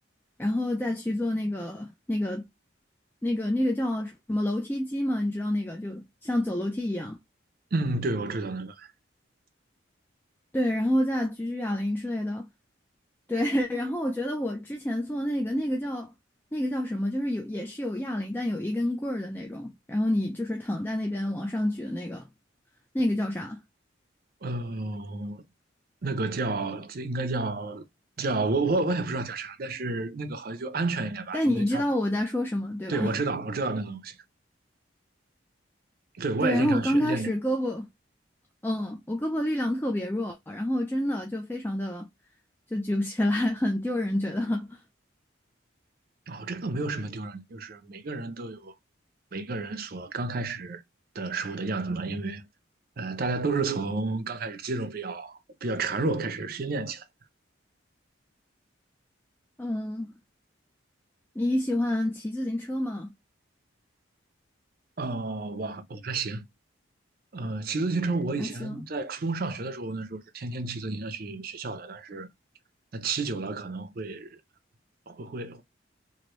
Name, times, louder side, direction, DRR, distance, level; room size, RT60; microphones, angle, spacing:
voice 1, 0.4-2.4 3.2-7.2 10.5-12.5 13.3-16.1 16.5-22.3 22.9-23.6 31.3-33.2 36.4-37.9 38.6-42.1 42.7-44.8 59.6-60.1 61.4-63.1 68.4-68.8, left 1 dB, 10° left, 0.3 m, -28 dB
voice 2, 7.7-8.9 24.4-25.4 26.0-27.8 28.2-31.8 32.9-34.2 36.2-37.3 46.3-48.7 49.3-50.8 51.1-52.5 53.0-57.0 65.0-66.4 67.3-72.3 72.9-74.4 75.1-75.6, right 3 dB, 50° right, 0.5 m, -31 dB
3.0 x 2.6 x 3.0 m
head